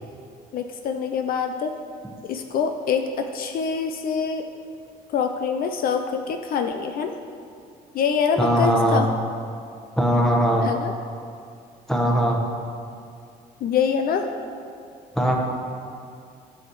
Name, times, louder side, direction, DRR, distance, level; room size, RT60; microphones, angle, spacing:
voice 1, 0.5-1.7 2.2-3.0 3.3-4.5 5.1-7.1 7.9-9.3 10.6-10.9 13.6-14.3, left 6 dB, 60° left, 6 dB, 0.6 m, -25 dB
voice 2, 8.4-9.0 10.0-10.7 11.9-12.4 15.1-15.4, right 1 dB, 5° left, 0 dB, 1.3 m, -20 dB
9.8 x 6.4 x 4.8 m, 2.4 s
cardioid pair, 110°, 17 cm